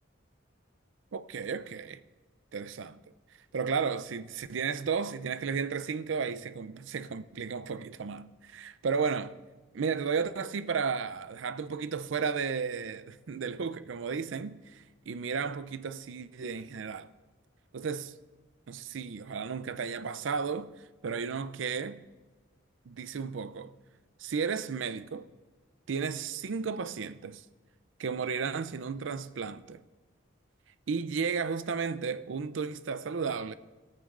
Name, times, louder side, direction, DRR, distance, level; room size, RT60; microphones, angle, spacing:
voice 1, 1.1-2.0 2.5-3.0 3.5-9.4 9.7-17.1 17.7-18.1 18.7-22.0 22.9-23.7 24.2-25.3 25.9-27.4 28.0-29.8 30.9-33.5, right 5 dB, 70° right, 0.5 m, -33 dB
18.5 x 8.7 x 2.5 m
head